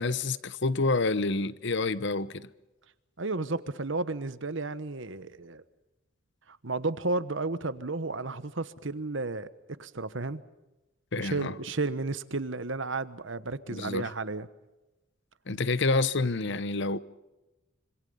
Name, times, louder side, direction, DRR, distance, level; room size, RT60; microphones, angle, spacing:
voice 1, 0.0-2.5 11.1-11.5 13.7-14.1 15.5-17.0, left 3 dB, 55° left, 0.8 m, -28 dB
voice 2, 3.2-5.6 6.5-9.5 9.8-10.4 11.2-14.5, right 3 dB, 60° right, 1.1 m, -32 dB
26.0 x 25.5 x 5.5 m
head